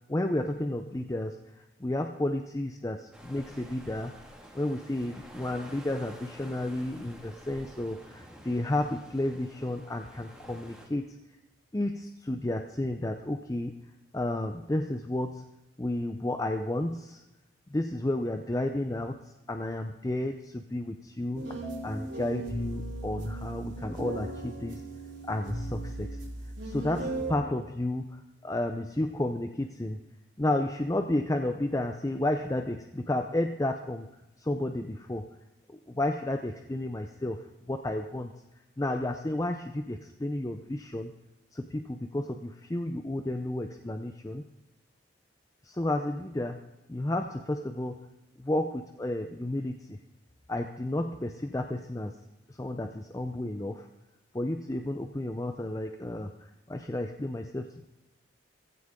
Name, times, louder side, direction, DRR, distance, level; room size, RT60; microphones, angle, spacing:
voice 1, 0.1-4.1 4.5-11.2 11.7-13.8 14.1-15.5 15.8-17.2 17.7-24.9 25.2-26.2 26.7-30.0 30.4-34.1 34.4-35.3 35.7-38.3 38.8-41.1 41.5-44.4 45.6-48.1 48.4-50.0 50.5-52.2 52.5-53.9 54.3-57.9, left 1 dB, 15° left, 6 dB, 0.5 m, -32 dB
sound 1, 3.1-10.9, equal, 5° right, 1.9 m, -50 dB
sound 2, 21.3-27.3, right 2 dB, 75° right, 4.1 m, -37 dB
16.5 x 15.5 x 3.7 m, 0.98 s
head